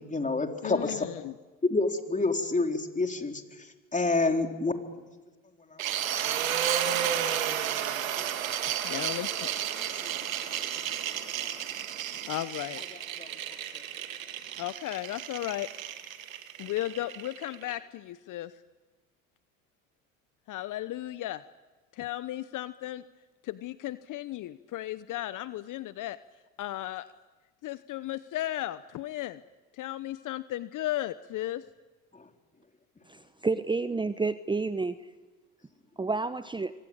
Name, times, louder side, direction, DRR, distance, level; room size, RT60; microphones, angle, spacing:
voice 1, 0.0-1.1 1.7-3.4 3.9-4.7 7.1-7.3 8.2-8.3 9.4-9.5 9.8-9.9 11.4-11.5 13.2-13.3, left 3 dB, 20° left, 5 dB, 4.0 m, -28 dB
voice 2, 0.6-1.3 8.8-9.5 12.3-12.8 14.6-15.7 16.6-18.5 20.5-21.4 21.9-23.0 23.4-26.2 26.6-27.1 27.6-29.4 29.8-31.6, left 14 dB, 50° left, 15 dB, 1.0 m, -35 dB
sound 1, 5.8-17.7, right 10 dB, 85° right, 1.9 m, -32 dB
voice 3, 33.1-35.0 36.0-36.7, right 3 dB, 10° right, 13 dB, 0.9 m, -30 dB
27.0 x 24.0 x 8.9 m, 1.3 s
hypercardioid pair, 65°, 39 cm